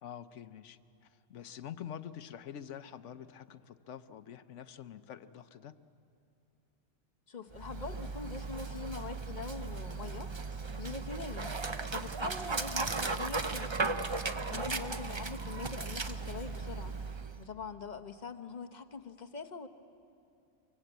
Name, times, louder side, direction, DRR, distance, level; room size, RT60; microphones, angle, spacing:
voice 1, 0.0-5.7 14.5-14.8, left 9 dB, 85° left, 12 dB, 1.1 m, -46 dB
voice 2, 7.3-10.3 10.8-11.6 11.9-19.7, left 5 dB, 40° left, 7 dB, 1.0 m, -43 dB
Dog, 7.5-17.5, right 4 dB, 30° right, 0.7 m, -36 dB
24.5 x 24.5 x 8.1 m, 2.6 s
omnidirectional pair, 1.2 m